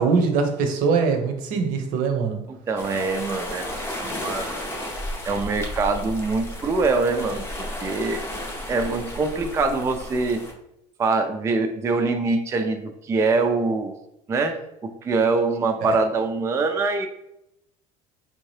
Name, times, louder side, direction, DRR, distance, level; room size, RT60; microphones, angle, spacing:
voice 1, 0.0-2.4 15.9-16.0, right 5 dB, 65° right, 6 dB, 0.7 m, -22 dB
voice 2, 2.5-4.6 5.2-8.2 8.7-10.4 11.0-13.9 14.3-14.6 14.8-17.1, right 3 dB, 20° right, 5 dB, 0.3 m, -24 dB
sound 1, 2.8-10.5, left 1 dB, 15° left, 0.7 m, -33 dB
3.5 x 2.7 x 3.2 m, 0.82 s
cardioid pair, 115°, 15 cm